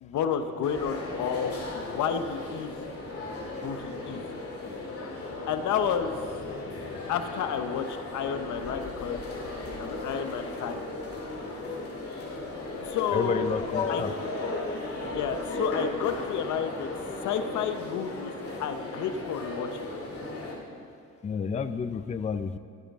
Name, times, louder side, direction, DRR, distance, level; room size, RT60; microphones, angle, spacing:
voice 1, 0.0-2.7 3.6-4.3 5.0-5.1 5.5-6.2 7.1-9.2 9.8-10.8 12.8-13.5 13.9-14.0 15.0-16.9 17.2-18.3 18.6-19.9, left 7 dB, 75° left, 9 dB, 0.8 m, -31 dB
sound 1, 0.6-20.5, left 2 dB, 50° left, 2.5 m, -36 dB
voice 2, 13.0-14.1 21.2-22.6, left 6 dB, 25° left, 11 dB, 0.4 m, -30 dB
17.0 x 8.3 x 3.6 m, 2.2 s
cardioid pair, 90°, 30 cm